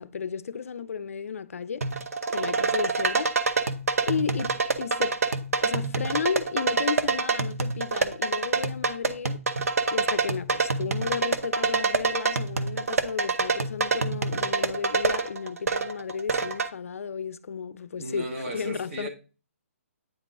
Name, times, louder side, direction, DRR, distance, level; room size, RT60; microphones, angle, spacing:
voice 1, 0.0-1.9 2.3-3.4 4.1-5.2 5.6-9.4 9.9-18.3 18.5-19.1, left 6 dB, 70° left, 0.5 m, -33 dB
sound 1, 1.8-16.7, right 4 dB, 80° right, 0.7 m, -26 dB
voice 2, 17.9-19.1, right 1 dB, 55° right, 1.6 m, -35 dB
8.8 x 3.7 x 3.6 m
hypercardioid pair, 155°, 8 cm